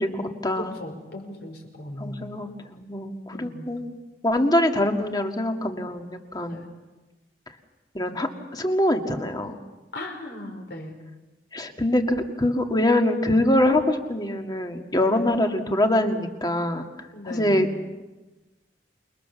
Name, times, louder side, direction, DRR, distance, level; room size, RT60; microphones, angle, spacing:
voice 1, 0.0-0.7 2.0-4.0 4.2-6.7 7.9-9.6 11.5-16.9 17.2-17.7, left 1 dB, 25° left, 4 dB, 2.1 m, -24 dB
voice 2, 0.6-2.3 3.3-3.7 6.4-6.7 9.9-11.0 15.0-15.3 17.1-17.7, left 1 dB, 65° left, 2 dB, 5.4 m, -38 dB
28.0 x 21.5 x 7.1 m, 1.1 s
head